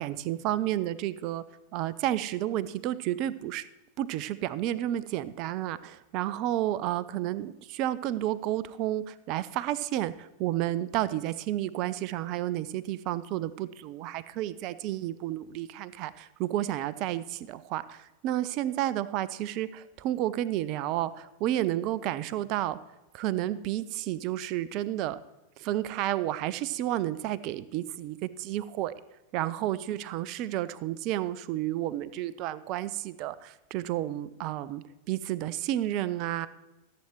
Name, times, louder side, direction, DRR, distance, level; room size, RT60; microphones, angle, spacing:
voice 1, 0.0-1.4 1.7-3.7 4.0-22.8 23.1-25.2 25.6-28.9 29.3-36.5, right 13 dB, 40° right, 16 dB, 0.4 m, -31 dB
14.5 x 7.8 x 3.1 m, 1.0 s
figure-of-eight pair, 90°, 0 cm